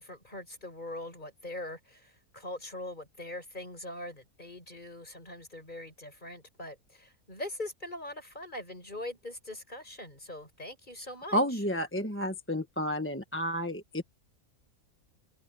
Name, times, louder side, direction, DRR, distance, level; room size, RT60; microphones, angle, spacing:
voice 1, 0.0-11.4, left 1 dB, 30° left, 6.5 m, -42 dB
voice 2, 11.3-14.0, equal, 10° left, 1.2 m, -31 dB
omnidirectional pair, 1.6 m